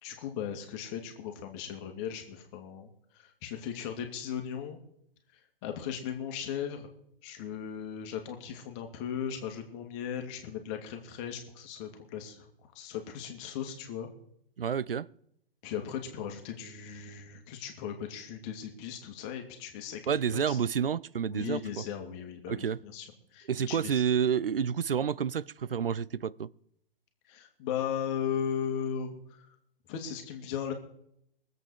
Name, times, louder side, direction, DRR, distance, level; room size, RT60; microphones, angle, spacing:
voice 1, 0.0-4.8 5.6-6.9 7.2-14.1 15.6-20.0 20.3-20.6 21.3-24.0 27.3-29.5 29.9-30.7, left 8 dB, 30° left, 2.2 m, -37 dB
voice 2, 14.6-15.1 20.1-21.8 22.5-22.8 23.5-26.5, right 7 dB, 70° right, 0.6 m, -29 dB
22.5 x 8.1 x 4.8 m
figure-of-eight pair, 120°, 29 cm